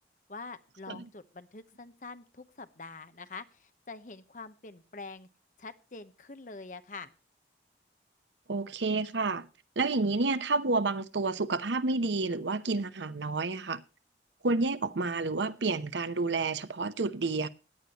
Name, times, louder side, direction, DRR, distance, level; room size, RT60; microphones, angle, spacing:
voice 1, 0.3-5.3 5.6-7.1, left 4 dB, 45° left, 0.9 m, -45 dB
voice 2, 8.5-9.5 9.8-13.8 14.4-17.5, right 3 dB, 90° right, 0.8 m, -30 dB
16.5 x 10.5 x 3.0 m
head